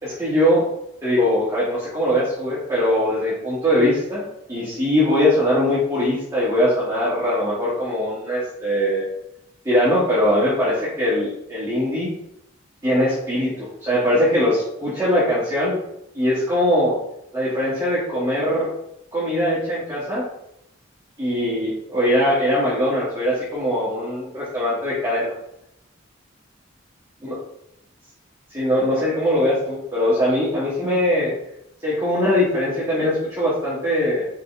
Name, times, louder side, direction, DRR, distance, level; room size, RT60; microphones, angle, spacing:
voice 1, 0.0-0.7 1.0-9.1 9.6-12.1 12.8-15.8 16.1-17.0 17.3-18.7 19.1-20.2 21.2-25.3 27.2-27.3 28.5-31.3 31.8-34.3, left 1 dB, 15° right, -10 dB, 2.4 m, -21 dB
6.5 x 5.1 x 3.5 m, 0.79 s
head